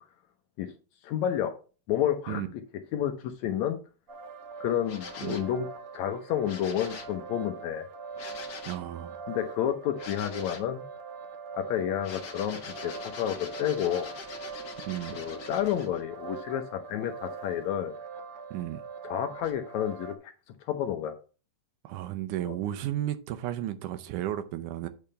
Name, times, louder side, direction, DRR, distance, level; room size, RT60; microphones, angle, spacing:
voice 1, 1.0-1.5 1.9-2.4 2.9-3.8 4.6-5.7 5.9-7.8 9.3-10.8 11.6-14.1 15.1-17.9 19.0-20.3 20.7-21.1 22.5-22.6, left 10 dB, 75° left, 1.8 m, -30 dB
sound 1, 4.1-20.2, right 5 dB, 55° right, 1.7 m, -43 dB
sound 2, 4.8-5.6 6.4-7.2 8.1-8.9 10.0-10.7 12.0-16.0 19.4-19.5, left 5 dB, 50° left, 1.3 m, -43 dB
voice 2, 8.7-9.2 14.8-15.2 18.5-18.8 21.8-24.9, right 13 dB, 80° right, 2.1 m, -33 dB
8.4 x 3.5 x 6.7 m
omnidirectional pair, 3.8 m